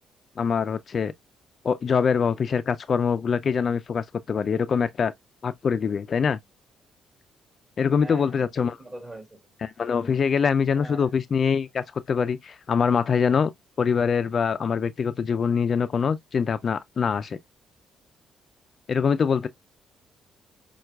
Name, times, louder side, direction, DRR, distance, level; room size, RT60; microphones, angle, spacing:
voice 1, 0.4-1.1 1.6-5.1 5.4-6.4 7.8-8.8 9.8-13.5 13.8-17.4 18.9-19.5, left 6 dB, 45° left, 0.3 m, -24 dB
voice 2, 7.9-9.6 10.7-11.1, right 1 dB, 25° right, 2.2 m, -43 dB
5.5 x 2.3 x 2.2 m
cardioid pair, 90°, 0 cm